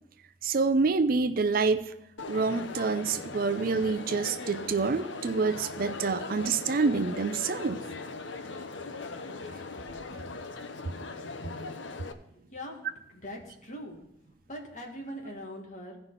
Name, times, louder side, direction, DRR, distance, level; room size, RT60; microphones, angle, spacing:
voice 1, 0.4-1.9 2.3-7.8, right 4 dB, 50° right, 11 dB, 0.4 m, -27 dB
Crowd, 2.2-12.1, left 3 dB, 80° left, 0.7 m, -39 dB
voice 2, 11.8-12.8 13.1-14.0 14.5-16.0, equal, 40° left, 0 dB, 1.9 m, -42 dB
16.0 x 5.6 x 4.0 m, 0.83 s
head